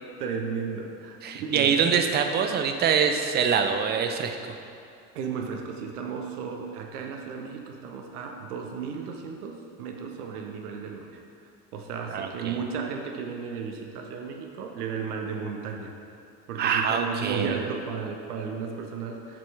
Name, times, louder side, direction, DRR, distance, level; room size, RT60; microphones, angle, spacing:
voice 1, 0.2-1.7 5.1-11.2 11.7-15.9 16.5-19.4, right 6 dB, 70° right, 2 dB, 0.8 m, -34 dB
voice 2, 1.2-4.6 12.1-12.6 16.6-17.6, right 6 dB, 25° right, 6 dB, 0.4 m, -25 dB
7.4 x 4.3 x 4.5 m, 2.4 s
figure-of-eight pair, 65°, 47 cm